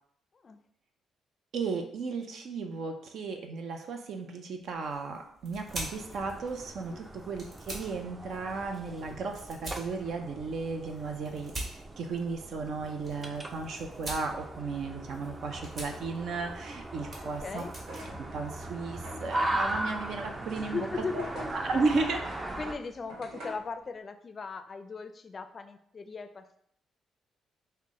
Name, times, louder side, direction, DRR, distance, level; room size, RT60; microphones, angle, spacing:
voice 1, 1.5-17.6 18.2-20.9 21.1-21.2 21.5-22.3, right 4 dB, 70° right, 4 dB, 0.5 m, -34 dB
sound 1, 4.6-19.2, right 1 dB, 45° right, 1.7 m, -46 dB
sound 2, 5.7-22.8, right 1 dB, 20° right, 0.4 m, -39 dB
voice 2, 17.2-17.8 20.6-21.5 22.5-26.6, left 4 dB, 40° left, 9 dB, 0.4 m, -38 dB
sound 3, 17.9-23.7, right 1 dB, 90° right, 1.3 m, -47 dB
5.7 x 2.1 x 3.6 m, 0.68 s
cardioid pair, 90°, 0 cm